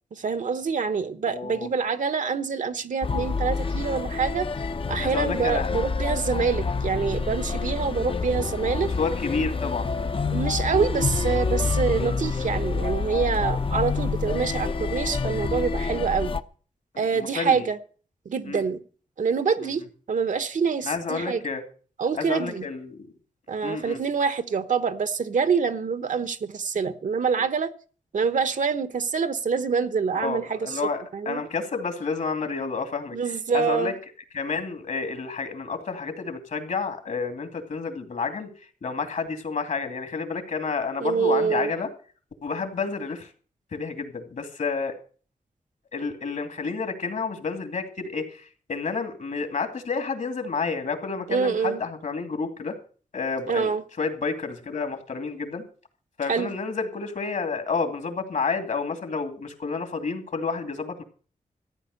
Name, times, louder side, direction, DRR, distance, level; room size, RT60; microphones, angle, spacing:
voice 1, 0.1-4.4 4.9-8.9 10.3-16.3 17.0-17.8 18.2-18.8 19.2-19.8 20.1-21.4 22.0-22.6 23.5-27.7 28.1-30.8 31.1-31.5 33.1-33.9 41.0-41.7 51.3-51.8 53.5-53.8 56.3-56.5, right 5 dB, 65° right, 1.1 m, -26 dB
voice 2, 1.3-1.7 5.0-5.7 8.2-8.5 8.8-9.9 17.1-17.6 18.4-18.6 19.6-19.7 20.8-21.6 22.1-22.9 23.6-24.0 30.1-33.2 33.5-33.9 34.3-38.5 38.8-41.9 42.4-43.3 43.7-44.9 45.9-52.7 53.1-53.7 54.0-55.6 56.2-61.0, left 4 dB, 65° left, 2.5 m, -30 dB
sound 1, 3.0-16.4, left 4 dB, 40° left, 0.7 m, -27 dB
14.5 x 9.2 x 6.5 m
wide cardioid pair, 85°, 14 cm